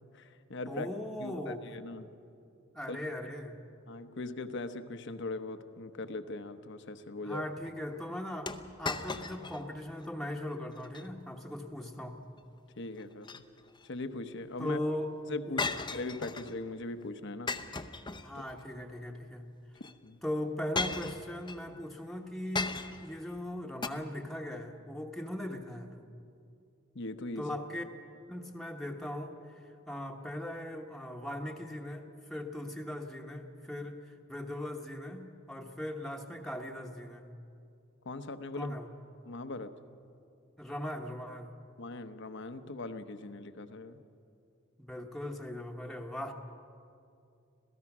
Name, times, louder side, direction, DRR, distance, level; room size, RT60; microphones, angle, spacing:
voice 1, 0.1-0.9 1.2-2.1 2.9-3.0 3.9-7.5 12.8-13.4 13.8-14.8 15.3-17.6 18.3-18.4 20.0-20.2 26.9-27.6 38.0-38.8 39.2-39.7 41.8-44.0, left 2 dB, 60° left, 10 dB, 1.0 m, -40 dB
voice 2, 0.6-1.6 2.7-3.6 7.2-12.2 14.6-15.1 15.5-15.7 18.2-19.5 20.2-26.0 27.4-27.8 28.3-37.3 38.5-38.9 40.6-41.5 44.8-46.3, left 1 dB, ahead, 0 dB, 1.1 m, -39 dB
sound 1, 8.5-9.6 10.0-10.1 10.7-11.1 13.0-13.8 15.6-16.6 17.5-18.6 19.8-19.9 20.7-21.6 22.5-23.1 23.8-23.9, left 3 dB, 20° left, 0.7 m, -36 dB
26.5 x 16.5 x 6.1 m, 2.5 s
head